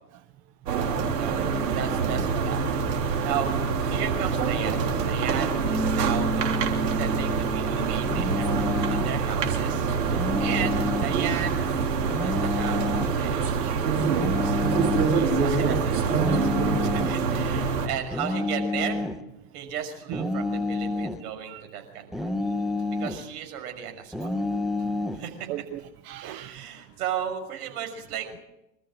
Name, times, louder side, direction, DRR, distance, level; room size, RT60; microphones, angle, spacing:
sound 1, 0.7-17.9, right 5 dB, 90° right, 3.8 m, -25 dB
voice 1, 1.2-2.8 3.2-3.5 3.9-6.5 7.0-9.9 10.4-11.6 12.2-13.5 13.9-14.0 14.5-19.0 19.5-22.3 22.9-24.3 25.1-25.5 26.2-28.4, right 9 dB, 70° right, 6.2 m, -35 dB
Bass guitar, 5.6-11.9, right 1 dB, 20° left, 5.5 m, -35 dB
sound 2, 8.1-9.2 10.1-11.2 12.1-13.2 14.1-15.2 16.1-17.2 18.1-19.2 20.1-21.2 22.1-23.2 24.1-25.2, left 2 dB, ahead, 1.2 m, -29 dB
voice 2, 13.3-13.9 17.5-17.8 20.1-20.3 21.2-21.6 25.5-26.6, right 13 dB, 50° right, 1.3 m, -39 dB
26.5 x 13.5 x 7.7 m
hypercardioid pair, 100°, 47 cm